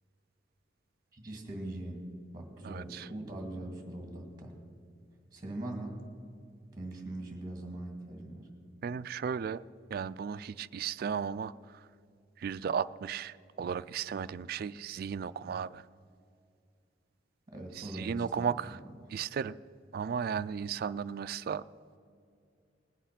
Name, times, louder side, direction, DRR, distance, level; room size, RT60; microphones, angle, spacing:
voice 1, 1.1-2.1 2.3-4.6 5.3-6.0 6.7-8.5 17.5-18.5, right 1 dB, 20° right, 3 dB, 2.0 m, -41 dB
voice 2, 2.6-3.1 8.8-9.6 9.9-11.8 12.4-15.9 17.8-18.8 19.1-19.6 19.9-21.6, right 7 dB, 55° right, 13 dB, 0.3 m, -35 dB
19.5 x 8.2 x 5.9 m, 2.4 s
head